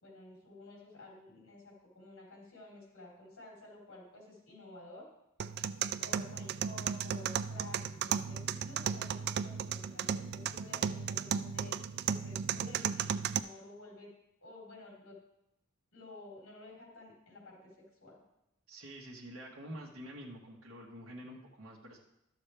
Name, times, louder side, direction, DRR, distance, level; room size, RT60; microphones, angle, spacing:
voice 1, 0.0-5.0 6.0-14.1 14.4-15.2 15.9-17.6 18.0-18.2, left 2 dB, 65° left, -4 dB, 3.7 m, -52 dB
sound 1, 5.4-13.4, right 8 dB, 50° right, 0.3 m, -35 dB
voice 2, 18.7-22.0, equal, 75° right, -3 dB, 1.4 m, -47 dB
12.0 x 7.2 x 3.4 m, 0.84 s
head